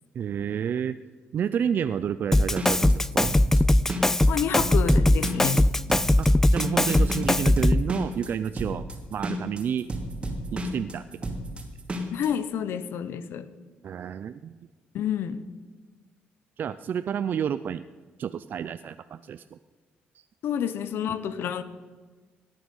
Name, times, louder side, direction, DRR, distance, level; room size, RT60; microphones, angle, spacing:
voice 1, 0.1-1.0 1.3-3.3 6.2-8.8 9.1-9.9 10.5-11.3 13.8-14.5 16.6-17.8 18.2-19.6 20.1-20.2, right 8 dB, 55° right, 12 dB, 0.4 m, -30 dB
Drum kit, 2.3-7.9, left 1 dB, 10° left, 0.4 m, -21 dB
sound 1, 2.5-12.3, right 1 dB, 30° right, 2.4 m, -32 dB
voice 2, 4.3-5.6 12.1-13.5 14.9-15.4 20.4-21.6, left 8 dB, 70° left, 13 dB, 0.9 m, -29 dB
17.5 x 9.2 x 5.5 m, 1.4 s
cardioid pair, 90°, 4 cm